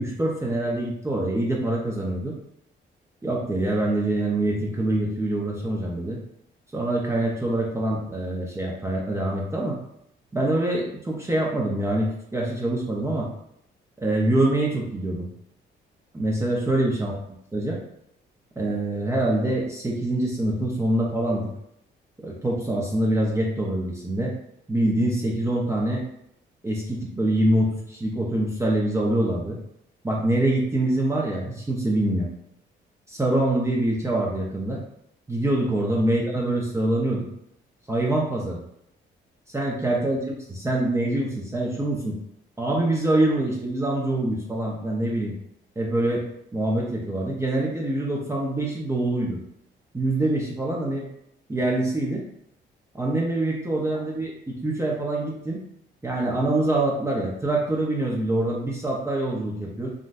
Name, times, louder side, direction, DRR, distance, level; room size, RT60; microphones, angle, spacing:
voice 1, 0.0-2.4 3.2-6.2 6.7-9.8 10.3-13.3 14.0-15.3 16.1-17.1 17.5-17.8 18.6-21.5 22.2-24.3 24.7-26.0 26.6-29.6 30.0-32.3 33.1-34.8 35.3-37.3 37.9-38.6 39.5-40.2 40.5-42.2 42.6-45.3 45.8-46.2 46.5-49.4 49.9-51.1 51.5-52.2 52.9-55.6 56.0-59.9, right 1 dB, 15° right, -3 dB, 0.6 m, -25 dB
3.7 x 2.2 x 2.5 m, 0.75 s
cardioid pair, 90°, 20 cm